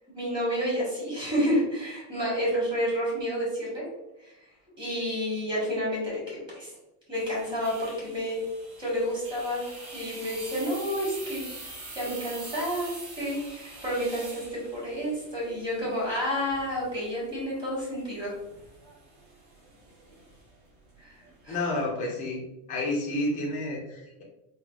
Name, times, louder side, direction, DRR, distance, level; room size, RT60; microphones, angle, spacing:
voice 1, 0.1-3.8 4.2-4.3 4.8-6.7 7.1-8.4 8.8-9.7 9.9-11.4 11.9-12.9 13.2-14.4 14.7-18.3 21.0-21.1 21.4-21.6, equal, 10° right, -7 dB, 1.2 m, -30 dB
sound 1, 7.1-21.9, right 2 dB, 35° right, 1.4 m, -45 dB
voice 2, 21.5-22.4 22.7-24.2, left 1 dB, 20° left, -2 dB, 0.4 m, -30 dB
3.7 x 2.1 x 2.4 m, 0.93 s
cardioid pair, 155°, 47 cm